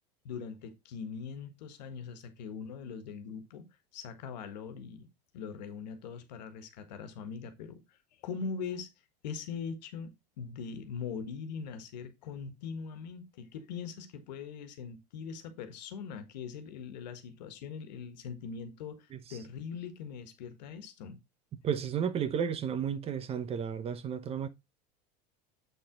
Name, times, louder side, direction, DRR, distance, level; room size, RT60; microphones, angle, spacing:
voice 1, 0.2-3.7 3.9-7.8 8.2-8.9 9.2-10.1 10.4-21.2, left 6 dB, 85° left, 1.6 m, -41 dB
voice 2, 21.6-24.5, right 8 dB, 30° right, 0.9 m, -33 dB
7.8 x 4.7 x 3.8 m
supercardioid pair, 130°, 21 cm